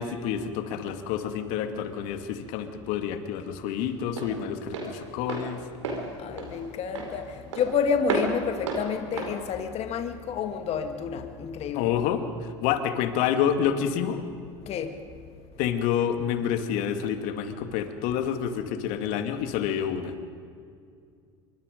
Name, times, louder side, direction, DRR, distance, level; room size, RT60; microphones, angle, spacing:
voice 1, 0.0-5.6 11.7-12.2 12.6-14.2 15.6-20.1, left 9 dB, 65° left, 7 dB, 2.3 m, -28 dB
Walk footsteps, 1.9-10.6, right 3 dB, 90° right, 4.9 m, -34 dB
voice 2, 6.2-11.9 14.6-15.0, left 6 dB, 45° left, 6 dB, 1.8 m, -29 dB
26.5 x 24.0 x 5.3 m, 2.3 s
hypercardioid pair, 90°, 15 cm